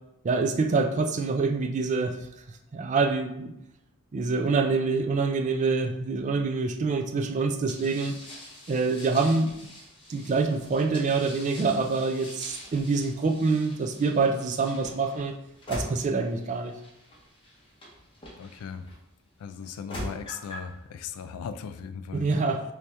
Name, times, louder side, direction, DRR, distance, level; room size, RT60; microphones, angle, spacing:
voice 1, 0.2-2.2 2.7-3.5 4.1-8.1 8.7-9.5 10.1-15.3 15.7-16.7 22.1-22.6, right 4 dB, 35° right, 5 dB, 0.3 m, -26 dB
sound 1, 7.7-18.9 19.6-20.7, equal, 25° left, 0.8 m, -43 dB
voice 2, 18.4-18.9 19.4-22.3, left 7 dB, 90° left, 11 dB, 0.3 m, -38 dB
3.2 x 2.8 x 3.3 m, 0.84 s
head